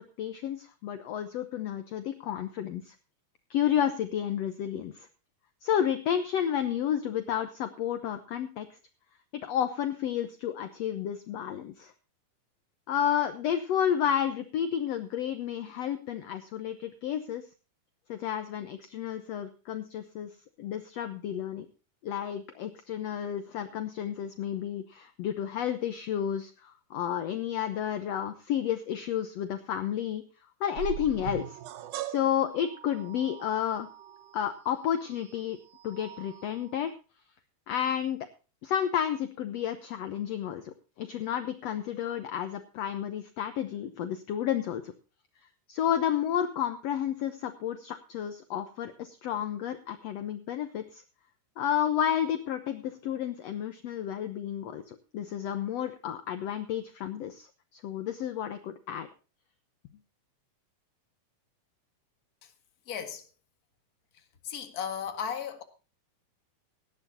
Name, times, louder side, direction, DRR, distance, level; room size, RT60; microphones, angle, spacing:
voice 1, 0.2-3.0 3.5-5.1 5.6-8.7 9.3-11.9 12.9-17.4 18.1-20.3 20.6-21.7 22.0-30.2 30.6-31.6 32.0-33.9 34.3-35.6 35.8-36.9 37.7-38.2 38.6-44.8 45.7-51.0 51.6-57.5 57.7-59.1, left 9 dB, 65° left, 1.7 m, -31 dB
sound 1, 30.8-36.9, right 12 dB, 75° right, 2.3 m, -42 dB
voice 2, 62.9-63.2 64.4-65.6, left 8 dB, 35° left, 1.7 m, -35 dB
18.5 x 12.5 x 2.8 m
omnidirectional pair, 3.8 m